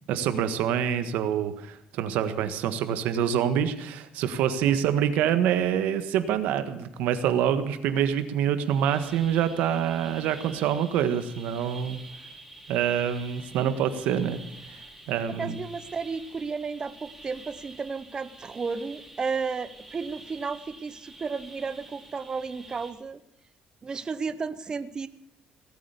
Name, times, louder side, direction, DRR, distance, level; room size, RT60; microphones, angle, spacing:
voice 1, 0.1-12.0 12.7-14.4 15.1-15.6, right 9 dB, 90° right, 10 dB, 1.5 m, -26 dB
sound 1, 8.6-22.9, right 2 dB, 5° right, 3.9 m, -48 dB
voice 2, 15.4-23.2 23.8-25.1, right 5 dB, 30° right, 12 dB, 0.8 m, -33 dB
18.5 x 8.8 x 8.3 m, 0.82 s
cardioid pair, 115°, 3 cm